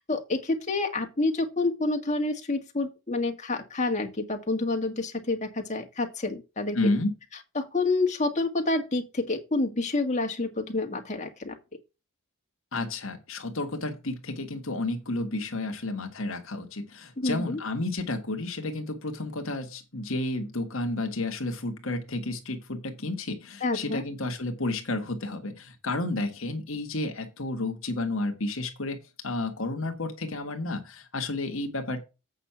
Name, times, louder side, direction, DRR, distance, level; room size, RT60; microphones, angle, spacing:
voice 1, 0.1-6.9 7.6-11.6 17.2-17.6 23.6-24.0, left 2 dB, 30° left, 1.8 m, -28 dB
voice 2, 6.7-7.1 12.7-29.0 29.2-32.0, left 2 dB, 65° left, 1.5 m, -31 dB
8.2 x 5.7 x 5.7 m
head